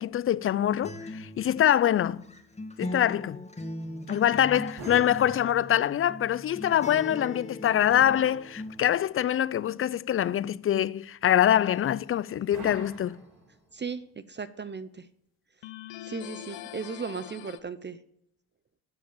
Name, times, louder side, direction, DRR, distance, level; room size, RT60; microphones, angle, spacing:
voice 1, 0.0-2.2 2.8-3.4 4.1-13.2, left 11 dB, 30° left, 0.4 m, -24 dB
Acoustic guitar, 0.8-8.8, left 1 dB, 15° left, 1.9 m, -40 dB
sound 1, 4.8-6.0 7.9-9.1 12.5-13.8, right 2 dB, 75° right, 3.8 m, -45 dB
sound 2, 11.6-12.2 15.6-17.6, left 14 dB, 70° left, 0.8 m, -43 dB
voice 2, 13.7-15.1 16.0-18.0, right 5 dB, 25° right, 0.6 m, -36 dB
13.0 x 4.7 x 7.2 m
supercardioid pair, 65°, 46 cm